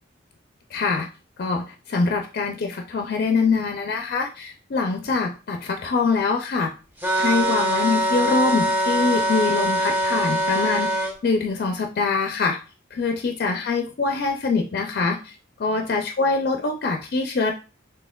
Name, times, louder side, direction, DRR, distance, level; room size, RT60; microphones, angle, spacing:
voice 1, 0.7-1.1 1.4-6.7 7.1-12.6 12.9-17.5, left 4 dB, 50° left, 3 dB, 0.4 m, -24 dB
sound 1, 7.0-11.1, right 1 dB, 10° right, 0.6 m, -23 dB
4.2 x 3.2 x 2.2 m, 0.33 s
head